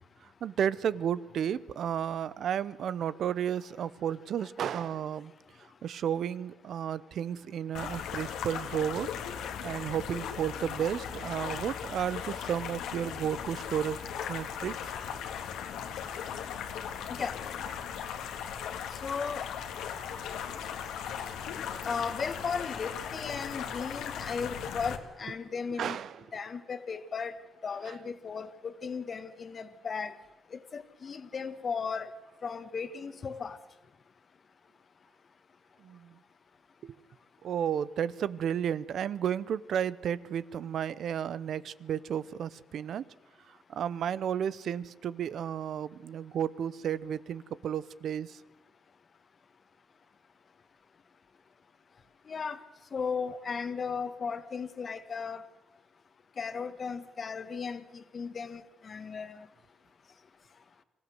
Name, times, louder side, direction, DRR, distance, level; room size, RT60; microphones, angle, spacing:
voice 1, 0.4-5.3 5.8-9.1 9.6-14.0 14.3-14.9 25.8-26.2 35.8-36.2 36.8-37.0 37.4-43.0 43.7-48.4, right 9 dB, 65° right, 18 dB, 0.7 m, -32 dB
sound 1, 7.7-25.0, left 8 dB, 85° left, 1.9 m, -38 dB
voice 2, 19.0-19.4 21.8-26.0 26.3-27.4 27.6-30.1 30.5-32.1 32.4-33.6 52.3-52.6 52.9-55.4 56.4-59.5, left 5 dB, 45° left, 11 dB, 1.6 m, -36 dB
24.5 x 15.0 x 8.0 m, 1.0 s
cardioid pair, 90°, 0 cm